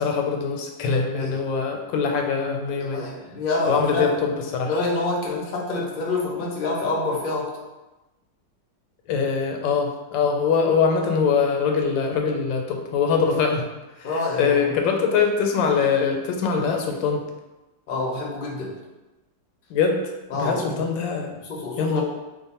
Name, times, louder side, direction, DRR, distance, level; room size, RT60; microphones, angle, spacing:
voice 1, 0.0-3.0 3.7-4.7 9.1-13.7 14.0-17.2 19.7-20.1 20.4-21.3 21.8-22.0, left 5 dB, 85° left, 2 dB, 1.3 m, -23 dB
voice 2, 2.8-4.2 4.7-7.5 14.0-14.7 17.9-18.7 20.3-20.8 21.4-22.0, left 3 dB, 65° left, -4 dB, 0.5 m, -27 dB
3.0 x 2.1 x 4.1 m, 1.1 s
omnidirectional pair, 2.0 m